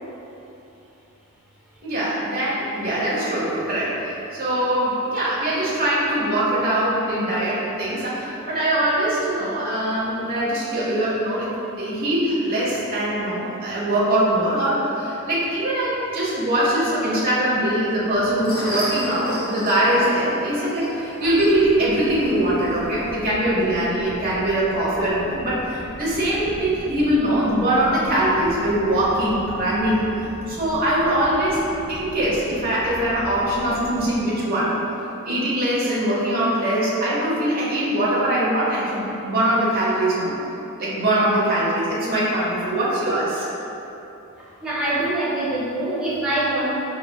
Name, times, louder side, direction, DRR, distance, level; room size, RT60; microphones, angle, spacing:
voice 1, 1.8-31.6 31.9-34.8 35.2-40.3 40.8-43.5, right 1 dB, 40° right, -7 dB, 0.9 m, -22 dB
sound 1, 18.1-23.3, equal, 25° left, 1.1 m, -34 dB
sound 2, 21.2-34.2, equal, 60° left, 0.7 m, -39 dB
voice 2, 44.6-46.8, right 1 dB, 5° right, -9 dB, 0.5 m, -24 dB
4.7 x 3.2 x 2.3 m, 3.0 s
head